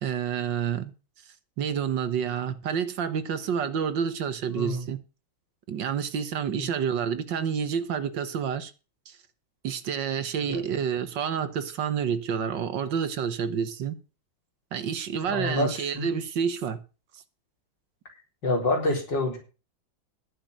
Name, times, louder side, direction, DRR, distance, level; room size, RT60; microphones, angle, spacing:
voice 1, 0.0-0.9 1.6-5.0 5.7-8.7 9.1-9.2 9.6-14.0 14.7-16.8, right 7 dB, 70° right, 1.9 m, -29 dB
voice 2, 4.6-4.9 6.6-6.7 10.5-10.6 15.3-16.2 18.4-19.4, left 2 dB, 65° left, 4.8 m, -27 dB
11.0 x 8.1 x 6.5 m
omnidirectional pair, 2.1 m